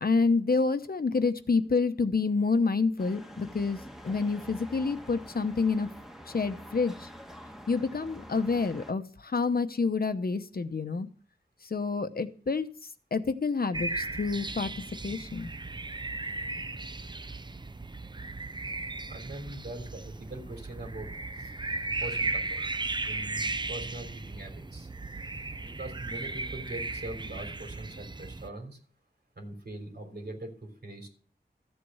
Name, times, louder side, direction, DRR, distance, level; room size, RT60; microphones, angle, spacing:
voice 1, 0.0-5.9 6.3-7.1 7.7-11.1 11.6-12.7 13.1-14.7 15.0-15.5, left 4 dB, 60° left, 10 dB, 0.9 m, -28 dB
sound 1, 3.0-8.9, equal, ahead, 1.3 m, -47 dB
sound 2, 13.7-28.5, right 3 dB, 25° right, 0.5 m, -36 dB
voice 2, 19.1-21.1 21.4-21.5 22.0-22.7 23.1-24.9 25.7-28.8 29.4-31.1, right 1 dB, 75° right, 3 dB, 3.4 m, -42 dB
14.0 x 7.9 x 5.5 m, 0.43 s
wide cardioid pair, 75°, 17 cm